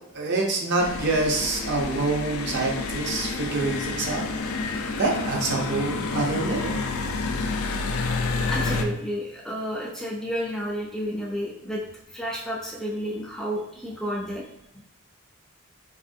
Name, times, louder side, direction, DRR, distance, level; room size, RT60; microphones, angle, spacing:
voice 1, 0.1-4.2 4.7-6.8, right 3 dB, 50° right, -1 dB, 0.6 m, -26 dB
sound 1, 0.8-8.8, left 3 dB, 75° left, 0.4 m, -29 dB
voice 2, 8.5-11.8 12.1-14.5 14.7-14.8, equal, ahead, -4 dB, 0.4 m, -31 dB
3.3 x 2.4 x 2.5 m, 0.76 s
head